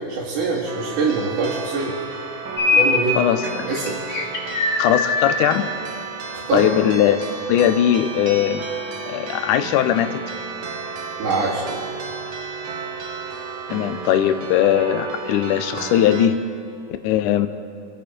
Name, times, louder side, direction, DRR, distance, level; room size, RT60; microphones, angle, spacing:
voice 1, 0.1-1.9 2.7-3.2 3.7-4.0 6.3-6.7 11.2-11.7, right 4 dB, 85° right, -8 dB, 3.9 m, -23 dB
sound 1, 0.7-16.3, right 4 dB, 60° right, 1.4 m, -33 dB
sound 2, 2.6-3.0 3.4-5.4, left 4 dB, 45° left, 1.1 m, -21 dB
voice 2, 3.2-3.7 4.8-5.7 6.5-8.6 9.1-10.2 13.7-16.4 17.0-17.5, left 10 dB, 90° left, 9 dB, 2.2 m, -19 dB
26.0 x 9.0 x 5.2 m, 2.6 s
omnidirectional pair, 3.5 m